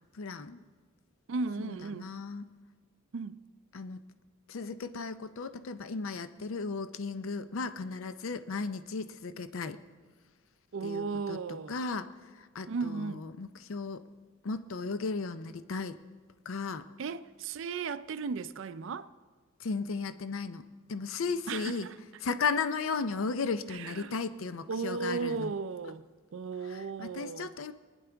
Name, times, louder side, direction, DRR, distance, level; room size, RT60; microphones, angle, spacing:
voice 1, 0.1-0.6 1.6-2.5 3.7-4.0 4.5-9.8 10.8-14.0 14.4-16.0 16.5-16.9 19.6-21.9 22.2-25.5 26.6-27.7, left 4 dB, 65° left, 0.5 m, -35 dB
voice 2, 1.3-2.1 3.1-3.4 10.7-11.8 12.7-13.2 17.0-19.1 21.5-21.9 23.7-24.1 24.7-26.0 26.3-27.5, right 4 dB, 60° right, 0.4 m, -35 dB
20.5 x 10.0 x 3.4 m
head